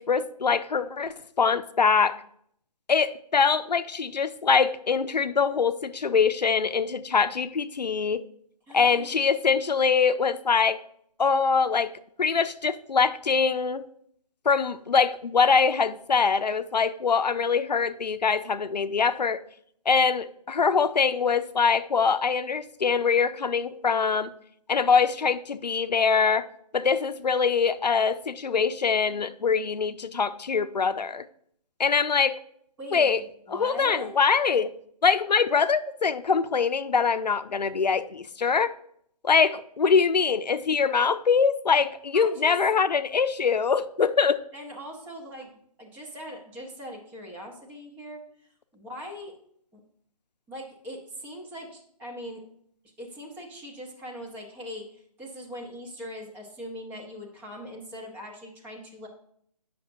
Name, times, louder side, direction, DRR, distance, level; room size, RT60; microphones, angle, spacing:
voice 1, 0.0-2.2 2.9-8.2 8.7-10.8 11.2-13.8 14.5-19.4 19.9-24.3 24.7-26.5 26.7-31.2 31.8-32.4 32.9-33.2 33.5-34.7 35.0-38.7 39.2-44.4, left 5 dB, 85° left, 0.5 m, -23 dB
voice 2, 8.7-9.3 32.8-34.2 42.1-42.6 44.5-45.5 45.8-48.2 48.7-49.3 49.7-49.8 50.5-52.4 53.0-59.1, equal, 10° right, 0.8 m, -41 dB
9.1 x 5.8 x 2.6 m
figure-of-eight pair, 150°, 21 cm